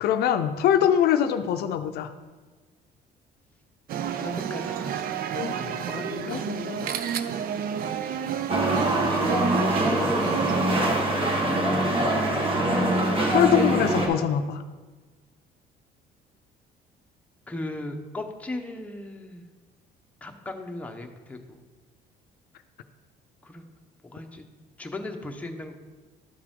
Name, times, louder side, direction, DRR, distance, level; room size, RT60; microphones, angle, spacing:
voice 1, 0.0-2.1 5.3-6.9 13.3-14.6, left 9 dB, 70° left, 8 dB, 0.5 m, -24 dB
sound 1, 3.9-10.8, right 8 dB, 60° right, 0.5 m, -31 dB
voice 2, 4.1-5.2 5.5-6.5 9.1-9.9 17.5-19.4 20.2-21.6 23.4-23.6 24.0-24.4 24.8-25.8, left 1 dB, 10° left, 3 dB, 0.8 m, -38 dB
sound 2, 8.5-14.1, right 1 dB, 30° right, 1.5 m, -23 dB
12.0 x 4.7 x 3.7 m, 1.3 s
cardioid pair, 110°, 17 cm